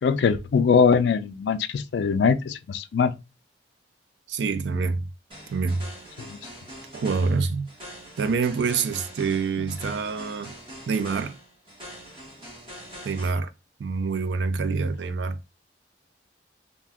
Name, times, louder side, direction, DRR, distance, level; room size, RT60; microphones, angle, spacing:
voice 1, 0.0-3.1 6.2-6.4, left 6 dB, 70° left, 0.3 m, -22 dB
voice 2, 4.3-5.0 5.5-5.9 6.9-7.7 8.2-10.6 10.9-11.3 13.0-13.5 13.8-15.4, right 4 dB, 75° right, 0.4 m, -26 dB
sound 1, 5.3-13.3, equal, 30° right, 1.1 m, -43 dB
2.5 x 2.2 x 3.5 m
head